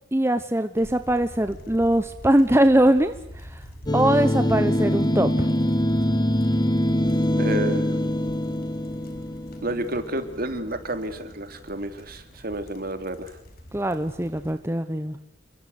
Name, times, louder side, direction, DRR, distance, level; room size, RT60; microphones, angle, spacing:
voice 1, 0.1-3.6 3.9-5.5 13.7-15.2, right 1 dB, 15° right, 9 dB, 1.1 m, -22 dB
sound 1, 0.7-14.6, equal, 55° left, 6.5 m, -46 dB
sound 2, 3.9-10.5, equal, 20° left, 1.3 m, -23 dB
voice 2, 7.4-7.9 9.6-13.3, right 2 dB, 50° right, 8 dB, 3.2 m, -30 dB
29.0 x 23.0 x 8.2 m, 0.79 s
head